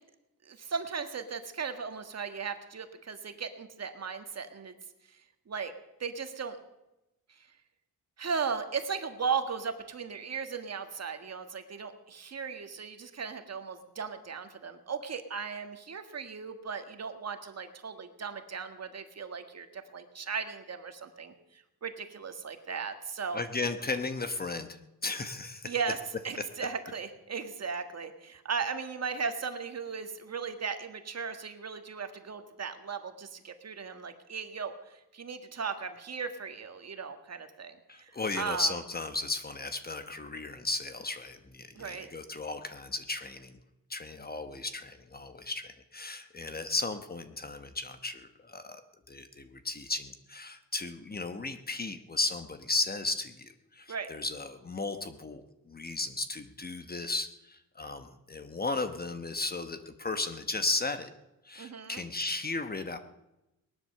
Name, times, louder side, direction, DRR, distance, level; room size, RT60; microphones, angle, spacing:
voice 1, 0.4-4.7 5.1-5.2 5.5-5.7 6.0-6.6 8.2-23.4 25.6-26.0 26.2-38.7 41.7-42.1 53.9-54.1 61.6-62.0, right 5 dB, 45° right, 7 dB, 1.7 m, -37 dB
voice 2, 23.3-24.7 25.0-25.7 37.9-43.6 43.9-48.8 49.1-61.1 61.4-63.0, left 3 dB, 25° left, 9 dB, 1.1 m, -35 dB
19.0 x 11.5 x 6.7 m, 0.95 s
cardioid pair, 110°, 37 cm